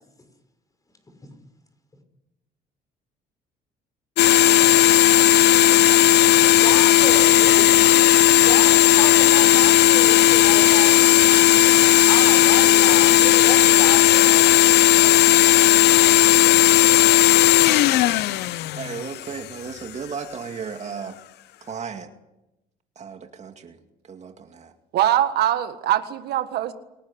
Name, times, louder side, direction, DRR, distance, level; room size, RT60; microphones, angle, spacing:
sound 1, 4.2-19.4, left 14 dB, 80° left, 0.8 m, -15 dB
voice 1, 6.5-8.0 8.4-11.1 11.7-14.5, left 2 dB, 20° left, 7 dB, 6.1 m, -31 dB
voice 2, 18.7-21.2 21.6-22.1 23.0-24.7, right 6 dB, 40° right, 6 dB, 2.2 m, -35 dB
voice 3, 24.9-26.7, right 12 dB, 75° right, 9 dB, 1.7 m, -22 dB
28.0 x 18.5 x 8.4 m, 0.94 s
cardioid pair, 110°, 17 cm